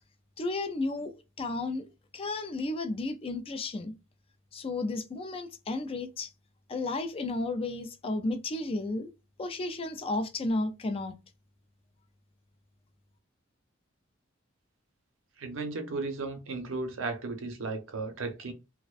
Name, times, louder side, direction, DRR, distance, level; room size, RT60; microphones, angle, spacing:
voice 1, 0.4-3.9 4.5-6.3 6.7-9.1 9.4-11.2, left 2 dB, 30° left, 0.4 m, -33 dB
voice 2, 15.4-18.5, right 3 dB, 75° right, 0.6 m, -35 dB
2.5 x 2.1 x 2.3 m
head